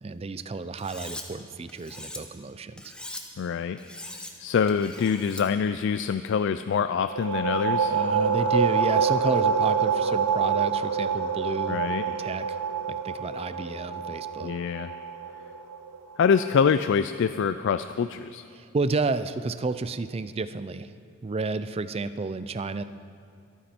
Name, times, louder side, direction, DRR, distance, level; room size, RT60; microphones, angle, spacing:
voice 1, 0.0-2.9 7.9-11.8 12.0-12.5 12.9-14.5 18.5-20.9 21.2-22.8, right 3 dB, 30° right, 13 dB, 0.4 m, -31 dB
Cutlery silverware, 0.8-1.2 1.7-2.2 2.8-3.2 3.8-4.3 4.7-5.4, left 1 dB, 5° left, 0.9 m, -40 dB
voice 2, 3.4-3.8 4.4-8.0 11.7-12.0 14.4-14.9 16.2-18.4, left 6 dB, 55° left, 11 dB, 0.3 m, -25 dB
sound 1, 7.0-16.4, right 6 dB, 90° right, 0.8 m, -26 dB
24.5 x 9.4 x 4.4 m, 2.3 s
head